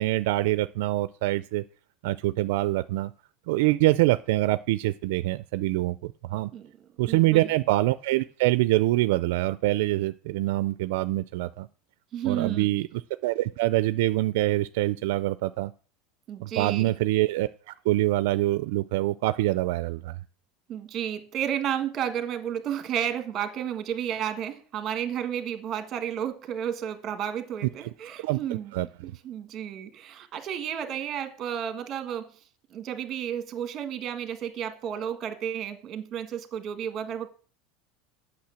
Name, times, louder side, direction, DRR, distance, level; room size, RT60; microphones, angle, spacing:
voice 1, 0.0-1.6 2.0-3.1 3.5-6.5 7.0-11.7 12.3-12.9 13.2-15.7 16.4-20.1 28.2-28.4 28.7-28.9, right 17 dB, 70° right, 0.4 m, -25 dB
voice 2, 7.0-7.5 12.1-12.7 16.3-16.9 20.7-28.7 29.0-32.4 32.7-37.3, right 9 dB, 30° right, 1.6 m, -32 dB
8.7 x 6.2 x 7.5 m
supercardioid pair, 155°, 0 cm